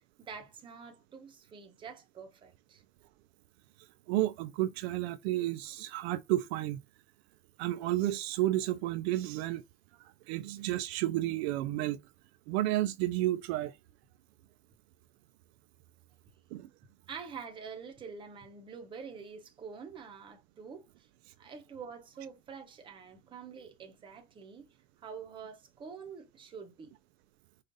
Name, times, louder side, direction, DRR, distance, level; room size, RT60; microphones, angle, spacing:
voice 1, 0.2-2.8 17.1-20.9 21.4-24.7 25.0-26.9, right 6 dB, 15° right, 0.7 m, -46 dB
voice 2, 4.1-6.8 7.6-9.6 10.3-12.0 12.5-13.7 16.5-16.7, right 15 dB, 60° right, 0.5 m, -31 dB
5.3 x 2.4 x 3.9 m
supercardioid pair, 170°, 37 cm